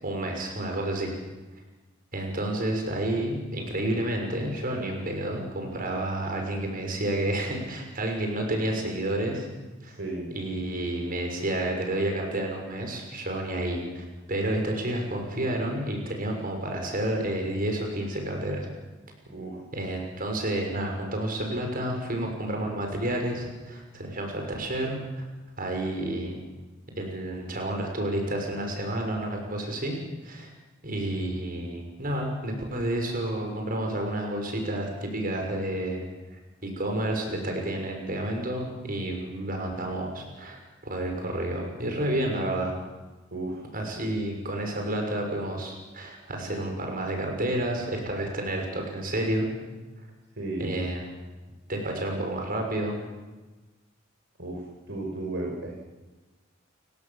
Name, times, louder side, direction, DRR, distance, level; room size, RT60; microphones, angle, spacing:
voice 1, 0.0-1.1 2.1-9.5 9.8-10.0 10.3-18.7 19.7-25.2 25.6-26.4 27.0-30.0 30.2-30.5 30.8-36.0 36.6-42.7 43.7-49.5 50.6-51.0 51.7-53.0, right 1 dB, 45° right, 2 dB, 6.2 m, -30 dB
voice 2, 10.0-10.3 19.3-19.6 43.3-43.6 50.4-50.7 54.4-55.8, right 2 dB, 65° right, -1 dB, 5.0 m, -34 dB
30.0 x 18.0 x 7.4 m, 1.2 s
head